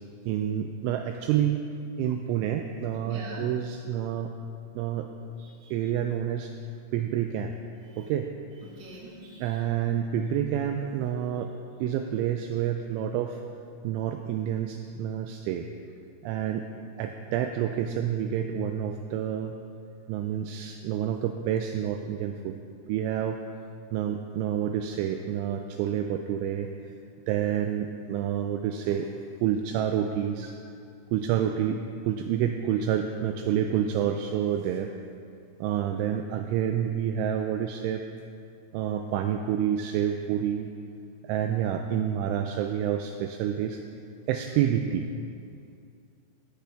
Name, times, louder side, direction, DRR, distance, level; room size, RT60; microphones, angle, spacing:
voice 1, 0.3-1.7 2.0-4.3 4.8-5.1 5.7-6.5 6.9-7.5 8.0-8.3 9.4-11.5 11.8-13.4 13.8-15.7 16.2-16.6 17.0-19.5 20.1-22.6 22.9-23.4 23.9-26.7 27.3-29.1 29.4-30.5 31.1-34.9 35.6-38.0 38.7-40.7 41.2-43.8 44.3-45.1, right 9 dB, 85° right, 5 dB, 2.8 m, -28 dB
voice 2, 3.0-3.5 5.4-5.9 7.8-8.1 8.6-9.6, right 2 dB, 50° right, -5 dB, 2.6 m, -45 dB
16.0 x 9.9 x 3.4 m, 2.4 s
omnidirectional pair, 5.7 m